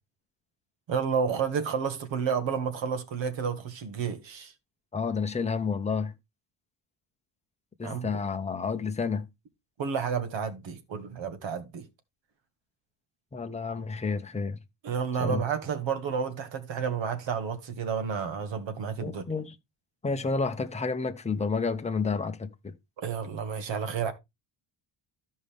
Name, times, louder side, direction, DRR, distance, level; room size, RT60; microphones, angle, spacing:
voice 1, 0.9-4.5 7.8-8.1 9.8-11.8 14.8-19.2 23.0-24.1, right 6 dB, 65° right, 1.9 m, -31 dB
voice 2, 4.9-6.1 7.8-9.3 13.3-14.6 15.2-15.4 19.0-19.5 20.0-22.7, left 4 dB, 15° left, 0.8 m, -30 dB
13.5 x 5.4 x 3.5 m
cardioid pair, 150°, 49 cm